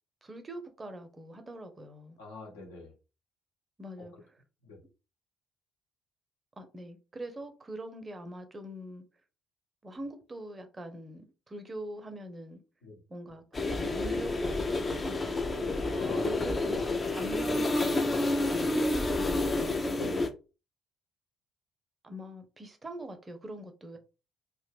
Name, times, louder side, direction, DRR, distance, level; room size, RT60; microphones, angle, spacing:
voice 1, 0.2-2.2 3.8-4.4 6.6-9.0 9.8-12.6 13.1-15.4 15.9-19.9 22.0-24.0, right 1 dB, 25° right, 0.6 m, -43 dB
voice 2, 2.2-2.9 4.0-4.1 4.6-4.8 12.8-13.0 15.7-16.5 19.9-20.3, left 2 dB, 75° left, 0.9 m, -44 dB
sound 1, 13.5-20.3, left 2 dB, 25° left, 0.5 m, -29 dB
2.4 x 2.1 x 3.3 m
figure-of-eight pair, 50°, 0 cm